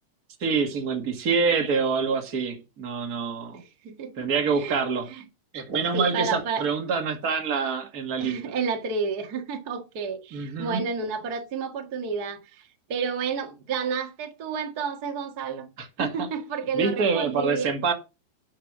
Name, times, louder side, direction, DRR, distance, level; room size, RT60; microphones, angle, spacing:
voice 1, 0.4-3.6 4.2-5.1 5.5-8.5 10.3-10.8 15.8-16.3 16.7-17.9, right 5 dB, 60° right, 0.9 m, -26 dB
voice 2, 3.5-4.8 5.1-5.2 5.9-6.6 8.2-15.7 16.0-17.7, right 5 dB, 90° right, 0.8 m, -31 dB
11.5 x 5.7 x 6.2 m
omnidirectional pair, 5.0 m